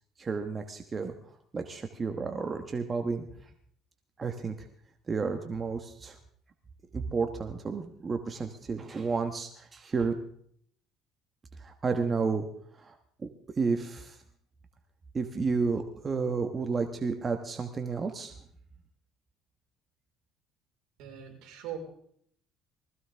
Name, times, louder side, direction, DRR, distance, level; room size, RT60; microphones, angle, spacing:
voice 1, 0.2-1.1 1.5-3.3 4.2-4.7 5.1-6.2 6.9-10.1 11.6-12.5 12.7-13.3 13.6-14.2 15.1-18.4, right 4 dB, 30° right, 6 dB, 1.2 m, -31 dB
voice 2, 21.0-21.8, right 11 dB, 75° right, 2 dB, 4.4 m, -41 dB
20.0 x 15.5 x 3.5 m, 0.63 s
cardioid pair, 115°, 0 cm